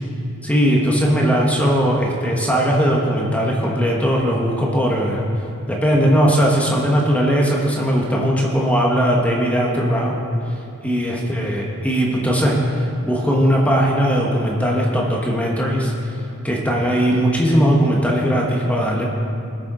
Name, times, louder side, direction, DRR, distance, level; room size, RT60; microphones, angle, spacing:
voice 1, 0.4-5.2 5.7-10.2 10.8-16.2 16.4-19.1, equal, 5° left, -2 dB, 1.3 m, -19 dB
19.5 x 7.0 x 3.9 m, 2.6 s
head